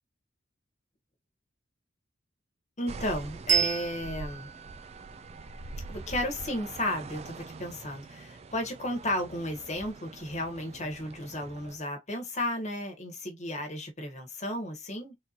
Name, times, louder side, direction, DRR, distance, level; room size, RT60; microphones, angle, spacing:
voice 1, 2.8-4.5 5.9-15.2, left 1 dB, 35° left, 1.4 m, -34 dB
sound 1, 2.9-11.8, right 3 dB, 30° right, 0.3 m, -44 dB
Bell, 3.5-6.6, right 8 dB, 70° right, 0.9 m, -33 dB
3.8 x 2.9 x 2.5 m
head